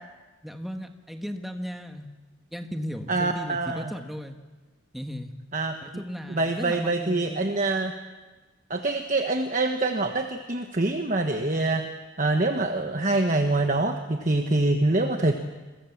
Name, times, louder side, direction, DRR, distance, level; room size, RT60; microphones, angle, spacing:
voice 1, 0.4-2.1 2.5-4.4 4.9-5.3 5.8-7.5, equal, ahead, 4 dB, 1.6 m, -36 dB
voice 2, 3.1-3.9 5.5-5.7 6.3-7.9 8.7-11.8 12.2-15.3, right 2 dB, 35° right, 5 dB, 1.3 m, -25 dB
28.5 x 22.5 x 7.3 m, 1.3 s
head